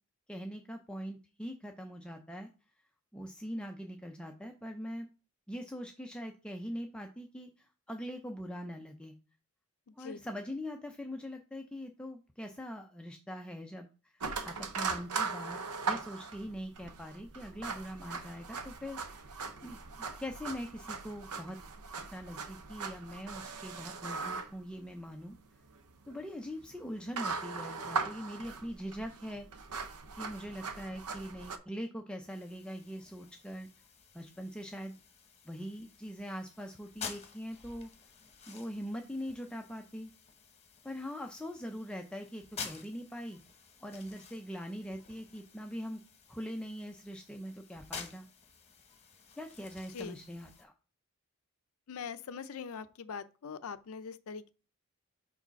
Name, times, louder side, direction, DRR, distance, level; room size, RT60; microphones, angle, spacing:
voice 1, 0.3-2.5 3.1-5.1 5.5-9.2 9.9-19.3 19.6-21.6 22.1-25.4 26.1-29.5 30.2-33.7 34.1-35.0 35.4-37.9 38.5-40.1 40.8-43.4 43.8-46.0 46.3-48.3 49.4-50.7, equal, 5° left, 0.4 m, -42 dB
sound 1, 14.2-31.6, right 4 dB, 85° right, 0.7 m, -39 dB
sound 2, 32.3-50.6, left 5 dB, 30° left, 1.1 m, -50 dB
voice 2, 51.9-54.5, left 6 dB, 70° left, 0.5 m, -42 dB
4.9 x 3.9 x 5.7 m
head